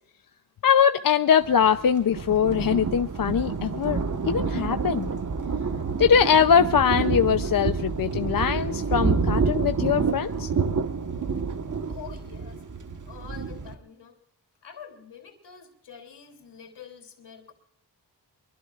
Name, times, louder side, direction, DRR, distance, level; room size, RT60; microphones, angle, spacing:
voice 1, 0.6-4.0 4.3-5.1 6.0-10.5, left 7 dB, 55° left, 9 dB, 0.7 m, -22 dB
Thunder, 1.4-13.7, right 5 dB, 45° right, 1.4 m, -28 dB
voice 2, 11.9-12.6 13.1-14.2 14.6-17.5, left 7 dB, 80° left, 4 dB, 3.4 m, -46 dB
23.5 x 23.5 x 2.5 m, 0.76 s
cardioid pair, 80°, 41 cm